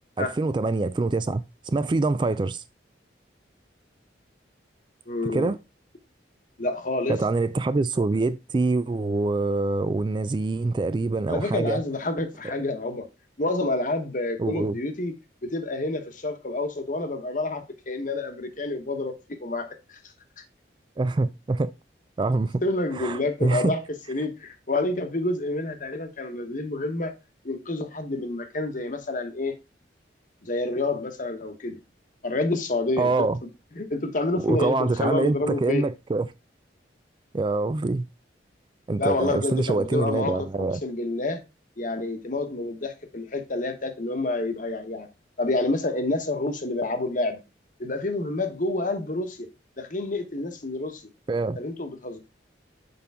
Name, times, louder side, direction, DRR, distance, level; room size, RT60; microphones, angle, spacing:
voice 1, 0.2-2.6 5.3-5.6 7.1-11.8 14.4-14.8 21.0-21.7 22.2-22.6 22.9-23.7 33.0-33.4 34.4-36.3 37.3-38.1 38.9-40.8 51.3-51.6, right 3 dB, 25° right, 0.3 m, -25 dB
voice 2, 5.1-5.5 6.6-7.2 11.3-13.1 13.4-15.1 15.4-20.0 22.6-23.8 24.1-27.1 27.4-29.6 30.4-31.8 32.2-33.1 33.8-35.9 39.0-40.5 40.8-41.4 41.8-45.1 45.4-47.4 47.8-49.5 49.8-51.0 51.6-52.2, left 2 dB, 45° left, 1.1 m, -28 dB
6.8 x 5.3 x 3.5 m
head